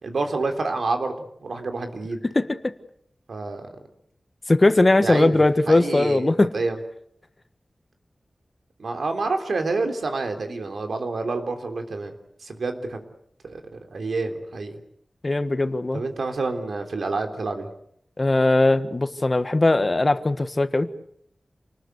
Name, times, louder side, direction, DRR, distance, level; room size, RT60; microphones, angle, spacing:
voice 1, 0.0-1.1 1.4-2.2 3.3-3.7 5.0-5.4 5.7-6.7 8.8-12.1 12.4-13.0 13.4-13.6 13.9-14.8 15.9-17.7, right 3 dB, 85° right, 6 dB, 3.5 m, -28 dB
voice 2, 2.3-2.7 4.5-6.5 15.2-16.0 18.2-20.9, left 2 dB, 35° left, 10 dB, 1.5 m, -20 dB
28.0 x 20.0 x 8.2 m, 0.70 s
wide cardioid pair, 85°, 0 cm